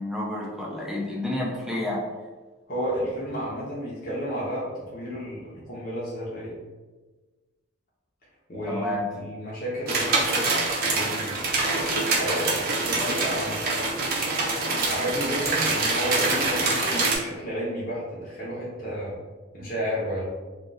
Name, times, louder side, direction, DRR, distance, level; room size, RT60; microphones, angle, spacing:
voice 1, 0.0-2.0 8.7-9.0, left 1 dB, ahead, -3 dB, 0.5 m, -29 dB
voice 2, 2.7-6.6 8.5-10.5 10.8-11.4 11.7-13.6 14.9-19.2 19.5-20.3, equal, 45° left, -7 dB, 0.8 m, -32 dB
sound 1, 9.9-17.1, right 3 dB, 45° right, 0.6 m, -25 dB
2.4 x 2.4 x 4.0 m, 1.3 s
head